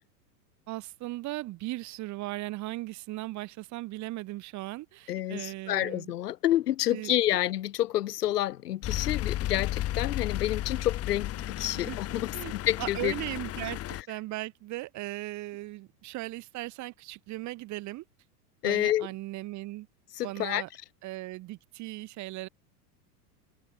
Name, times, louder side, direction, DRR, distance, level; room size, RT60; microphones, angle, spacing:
voice 1, 0.7-6.1 6.9-7.1 11.7-12.5 12.8-18.0 18.6-19.9 20.2-20.7 21.0-22.5, right 18 dB, 35° right, 6.1 m, -38 dB
voice 2, 5.1-13.1 18.6-19.1 20.2-20.6, left 13 dB, 80° left, 5.5 m, -29 dB
sound 1, 8.8-14.0, left 14 dB, 30° left, 4.5 m, -33 dB
supercardioid pair, 145°, 47 cm